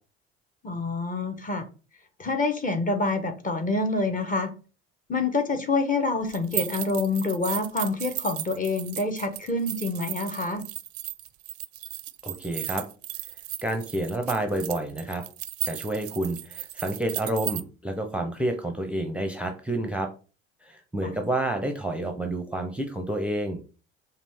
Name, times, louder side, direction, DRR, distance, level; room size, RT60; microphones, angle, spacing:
voice 1, 0.6-1.6 2.2-4.5 5.1-10.6 21.0-21.1, left 3 dB, 25° left, 6 dB, 1.0 m, -27 dB
sound 1, 6.3-17.6, right 14 dB, 45° right, 0.5 m, -35 dB
voice 2, 12.2-12.8 13.6-15.2 15.6-20.1 20.6-23.6, right 1 dB, 5° right, 4 dB, 0.7 m, -29 dB
5.1 x 2.4 x 3.5 m, 0.35 s
hypercardioid pair, 70°, 32 cm